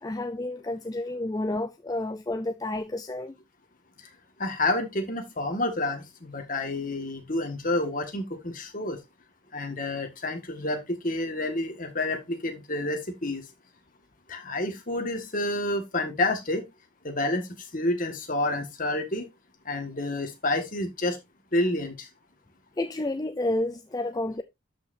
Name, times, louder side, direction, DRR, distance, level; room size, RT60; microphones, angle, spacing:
voice 1, 0.0-3.4 22.8-24.4, left 1 dB, 20° left, 0.4 m, -30 dB
voice 2, 4.4-9.0 9.5-13.4 14.3-16.7 17.0-19.3 19.7-21.2 21.5-22.1, left 2 dB, 40° left, 1.7 m, -29 dB
12.0 x 5.7 x 2.6 m
head